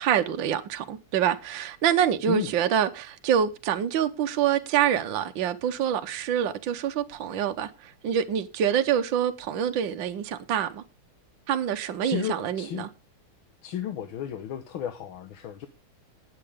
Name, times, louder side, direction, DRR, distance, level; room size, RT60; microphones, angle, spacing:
voice 1, 0.0-10.8 11.5-12.9, right 9 dB, 65° right, 1.5 m, -26 dB
voice 2, 12.0-12.9 13.6-15.7, left 10 dB, 70° left, 1.8 m, -33 dB
18.5 x 7.8 x 3.5 m
omnidirectional pair, 2.4 m